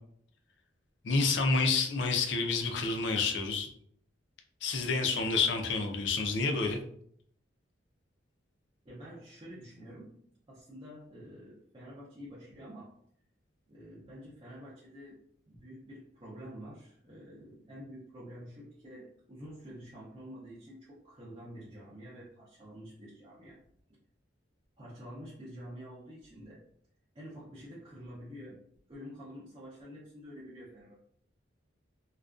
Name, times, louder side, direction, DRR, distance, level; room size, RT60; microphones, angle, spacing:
voice 1, 1.0-3.7 4.6-6.8, left 4 dB, 65° left, 4 dB, 0.4 m, -29 dB
voice 2, 8.8-10.2 10.5-13.0 13.7-15.2 15.5-23.6 24.8-26.6 27.1-28.6 28.9-31.0, equal, 25° right, -9 dB, 0.5 m, -48 dB
2.3 x 2.2 x 2.4 m, 0.67 s
head